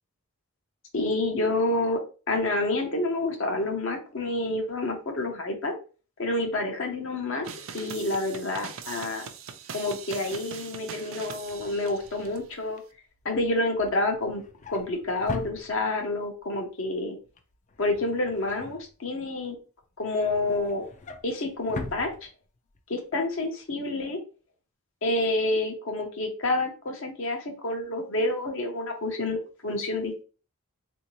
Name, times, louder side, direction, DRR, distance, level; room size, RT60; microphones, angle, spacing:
voice 1, 0.9-2.0 2.3-5.7 6.2-7.5 7.7-9.3 9.7-12.8 13.2-14.4 14.7-17.2 17.8-19.6 20.0-20.9 21.2-22.3 22.9-24.2 25.0-30.2, left 2 dB, 60° left, 3 dB, 0.7 m, -28 dB
sound 1, 7.4-12.4, right 7 dB, 65° right, 0.4 m, -41 dB
Drawer open or close, 11.2-16.2 16.6-16.9 17.2-19.4 19.8-22.8 23.2-23.4 23.6-23.7, left 2 dB, 35° left, 0.3 m, -43 dB
3.6 x 2.6 x 3.0 m, 0.36 s
head